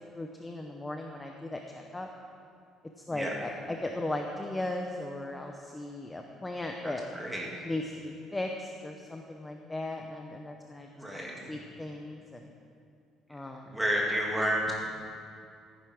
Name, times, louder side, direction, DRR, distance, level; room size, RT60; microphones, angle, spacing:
voice 1, 0.2-2.1 3.1-7.0 7.6-10.9 11.5-12.4 13.3-13.8, left 2 dB, 10° left, 3 dB, 0.7 m, -37 dB
voice 2, 6.8-7.5 10.9-11.6 13.7-14.7, equal, 5° right, -3 dB, 2.4 m, -31 dB
14.0 x 10.5 x 6.2 m, 2.5 s
cardioid pair, 165°, 0 cm